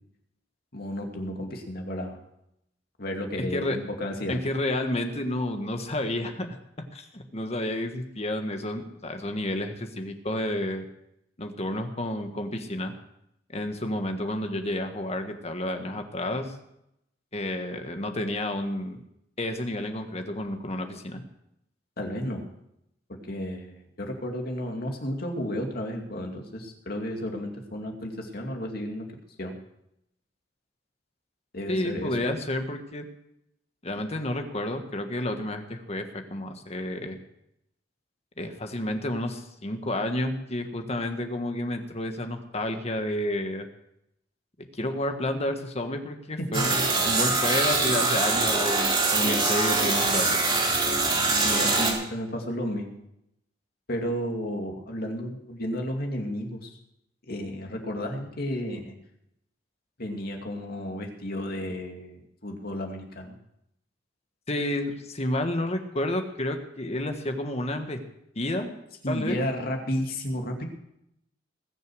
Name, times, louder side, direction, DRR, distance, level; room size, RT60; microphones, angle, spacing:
voice 1, 0.7-2.2 3.0-4.4 22.0-22.4 23.3-29.1 29.4-29.5 31.5-32.1 49.2-49.4 51.4-53.0 53.9-56.7 57.3-58.9 60.0-63.4 69.0-70.6, equal, 55° left, 2 dB, 2.5 m, -32 dB
voice 2, 3.4-3.8 4.3-6.5 6.9-10.8 11.4-12.9 13.5-16.5 17.3-19.0 19.4-21.2 31.7-33.1 33.8-37.2 38.4-43.7 44.8-46.8 47.0-50.4 64.5-68.0 68.3-68.8 69.1-69.4, left 1 dB, 35° left, 6 dB, 1.5 m, -30 dB
sound 1, 46.5-51.9, right 3 dB, 30° right, 4.4 m, -24 dB
20.0 x 6.8 x 6.3 m, 0.79 s
head